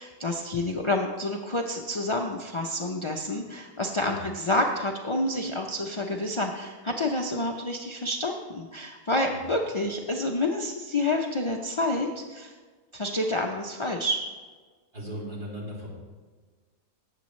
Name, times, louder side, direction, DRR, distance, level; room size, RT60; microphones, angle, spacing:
voice 1, 0.0-12.5 12.9-14.2, left 1 dB, 50° left, 1 dB, 0.3 m, -28 dB
voice 2, 14.9-16.0, equal, 35° right, -5 dB, 3.2 m, -37 dB
17.5 x 7.4 x 3.1 m, 1.5 s
omnidirectional pair, 1.5 m